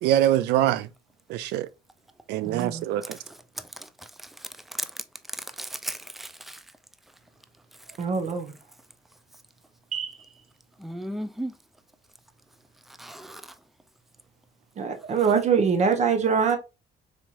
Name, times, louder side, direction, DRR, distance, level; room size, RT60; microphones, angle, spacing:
voice 1, 0.0-0.9 1.3-1.7 2.3-3.2, right 12 dB, 85° right, 0.4 m, -24 dB
voice 2, 2.4-2.9 8.0-8.5 9.9-10.2 14.8-16.6, right 6 dB, 45° right, 0.7 m, -24 dB
voice 3, 5.6-6.6 10.8-11.5 13.0-13.4, right 1 dB, ahead, 0.3 m, -35 dB
4.2 x 3.0 x 2.4 m
cardioid pair, 110°, 17 cm